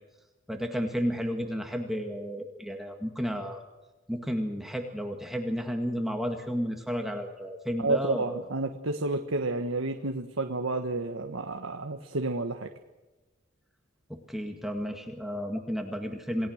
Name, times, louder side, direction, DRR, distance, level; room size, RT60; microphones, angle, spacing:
voice 1, 0.5-3.6 4.1-8.5 14.1-16.5, equal, ahead, 3 dB, 1.9 m, -32 dB
voice 2, 7.8-12.7, right 2 dB, 90° right, 5 dB, 1.5 m, -30 dB
28.5 x 18.0 x 6.5 m, 1.1 s
head